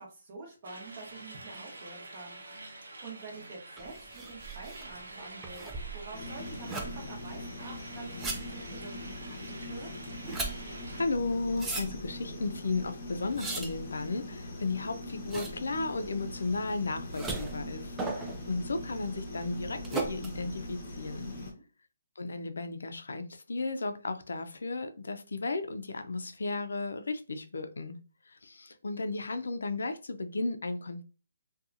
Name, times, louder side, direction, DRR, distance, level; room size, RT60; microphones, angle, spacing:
voice 1, 0.0-2.4 2.7-5.7 5.9-9.9 21.3-21.6, right 3 dB, 30° right, -1 dB, 0.9 m, -47 dB
sound 1, 0.6-11.0, right 2 dB, 90° right, 0.8 m, -47 dB
sound 2, 3.8-21.4, right 3 dB, 5° right, 0.3 m, -40 dB
sound 3, 6.1-21.5, left 1 dB, 30° left, 0.7 m, -42 dB
voice 2, 10.9-21.3 22.2-28.0 28.4-31.0, left 3 dB, 80° left, 8 dB, 0.4 m, -34 dB
2.7 x 2.2 x 2.5 m, 0.35 s
hypercardioid pair, 170°, 0 cm